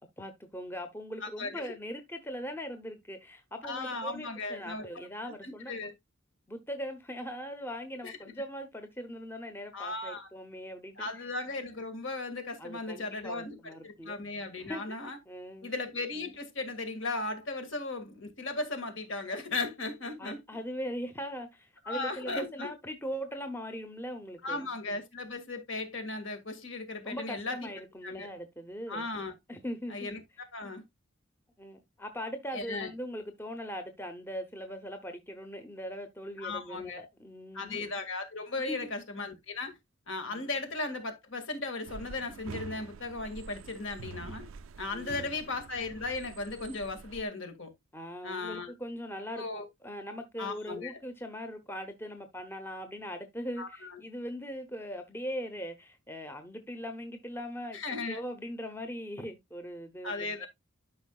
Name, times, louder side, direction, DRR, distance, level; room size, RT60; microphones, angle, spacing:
voice 1, 0.2-5.9 6.5-11.3 12.6-14.2 14.6-15.0 15.3-15.7 20.2-24.7 27.0-29.1 29.5-30.1 31.6-37.8 38.7-38.9 40.3-40.5 44.9-45.4 47.9-57.8 58.1-60.5, equal, 10° left, 0.8 m, -40 dB
voice 2, 1.2-1.7 3.6-5.9 8.0-8.2 9.7-10.3 11.0-13.6 13.8-15.2 15.6-20.4 21.9-22.7 24.4-27.7 28.0-28.3 28.9-29.3 29.9-30.2 30.5-30.8 32.5-32.9 36.4-37.0 37.5-39.7 40.1-44.5 44.8-47.7 48.2-48.7 49.4-49.7 50.4-51.0 53.6-54.0 57.7-58.2 60.0-60.5, left 3 dB, 60° left, 2.1 m, -36 dB
sound 1, 41.9-47.2, right 4 dB, 70° right, 0.4 m, -46 dB
12.0 x 5.5 x 2.3 m
head